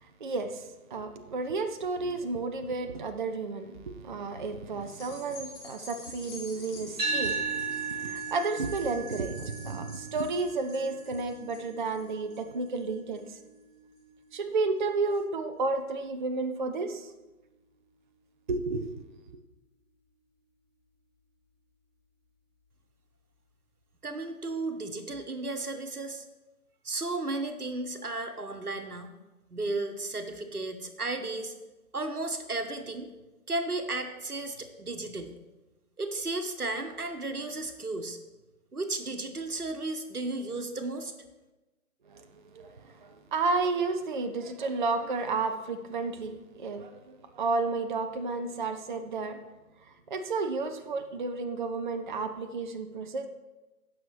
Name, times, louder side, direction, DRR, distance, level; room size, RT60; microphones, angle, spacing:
voice 1, 0.0-13.4 14.3-17.1 18.5-19.1 42.1-49.4 49.9-53.3, right 3 dB, 35° right, 8 dB, 0.5 m, -32 dB
sound 1, 4.8-13.5 14.0-14.1, left 3 dB, 10° left, 0.7 m, -49 dB
sound 2, 7.0-15.2, right 4 dB, 10° right, 3.2 m, -37 dB
voice 2, 24.0-26.2 26.8-29.1 29.5-31.5 31.9-33.1 33.5-35.3 36.0-38.2 38.7-41.1, right 2 dB, 85° right, 8 dB, 1.2 m, -34 dB
16.0 x 6.2 x 3.2 m, 1.1 s
figure-of-eight pair, 130°, 44 cm